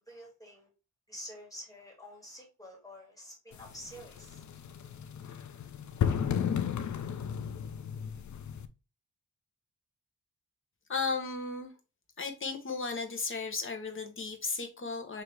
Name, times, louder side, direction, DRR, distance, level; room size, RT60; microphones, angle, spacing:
voice 1, 0.1-0.7 1.1-4.4, equal, 10° left, 1.8 m, -48 dB
sound 1, 3.5-8.7, left 8 dB, 60° left, 0.5 m, -34 dB
voice 2, 10.9-11.7 12.2-15.2, left 4 dB, 40° left, 0.9 m, -35 dB
4.8 x 2.8 x 3.1 m
wide cardioid pair, 165°, 33 cm